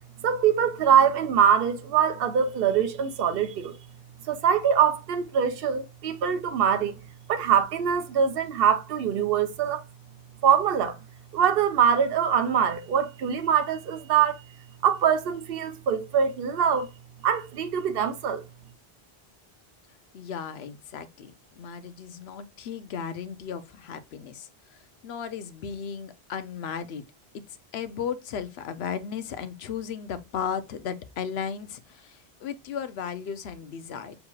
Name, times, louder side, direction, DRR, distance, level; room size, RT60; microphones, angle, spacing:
voice 1, 0.2-3.8 4.3-7.0 7.3-9.8 10.4-11.0 11.3-14.4 14.8-16.9 17.2-18.4, right 8 dB, 65° right, 0.9 m, -23 dB
voice 2, 20.1-27.0 27.5-34.2, left 7 dB, 80° left, 0.9 m, -35 dB
6.7 x 2.9 x 2.3 m
omnidirectional pair, 1.0 m